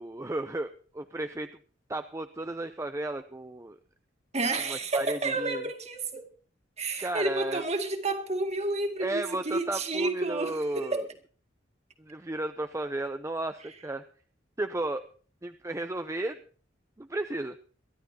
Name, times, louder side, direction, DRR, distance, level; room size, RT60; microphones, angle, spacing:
voice 1, 0.0-1.6 1.9-3.8 4.7-5.7 7.0-7.6 9.0-11.1 12.0-14.0 14.6-15.0 15.4-16.4 17.0-17.6, right 2 dB, 15° right, 0.6 m, -34 dB
voice 2, 4.3-6.3 6.8-11.0, right 2 dB, 35° right, 2.1 m, -30 dB
23.0 x 13.0 x 2.9 m
head